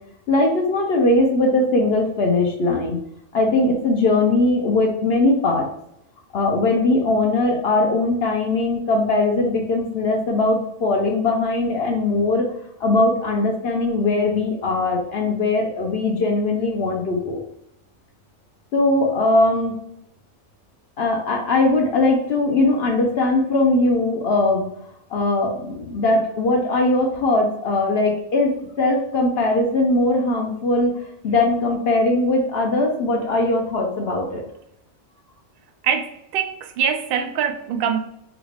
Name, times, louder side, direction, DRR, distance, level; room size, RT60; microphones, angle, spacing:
voice 1, 0.3-3.0 3.3-5.7 6.3-12.4 12.8-17.4 18.7-19.7 21.0-24.7 25.1-30.9 31.2-34.4, left 2 dB, 60° left, 1 dB, 0.7 m, -20 dB
voice 2, 35.8-38.0, right 8 dB, 80° right, 5 dB, 0.5 m, -23 dB
3.5 x 2.4 x 3.2 m, 0.77 s
omnidirectional pair, 1.5 m